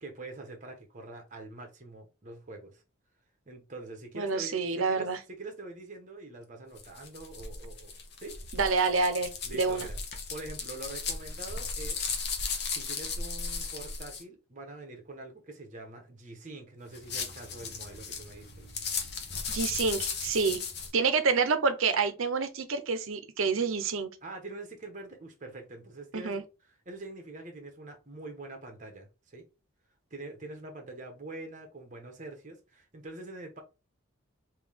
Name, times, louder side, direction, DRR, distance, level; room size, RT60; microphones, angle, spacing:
voice 1, 0.0-2.8 3.5-7.9 8.2-8.3 9.4-10.0 10.3-12.0 12.7-18.7 24.2-29.4 30.1-33.6, right 2 dB, 35° right, 1.1 m, -44 dB
voice 2, 4.1-5.2 8.5-9.9 19.5-20.6 20.9-24.1 26.1-26.4, right 4 dB, 80° right, 0.7 m, -28 dB
sound 1, 6.8-14.2 16.9-20.9, left 5 dB, 50° left, 0.8 m, -36 dB
3.6 x 2.8 x 3.4 m
head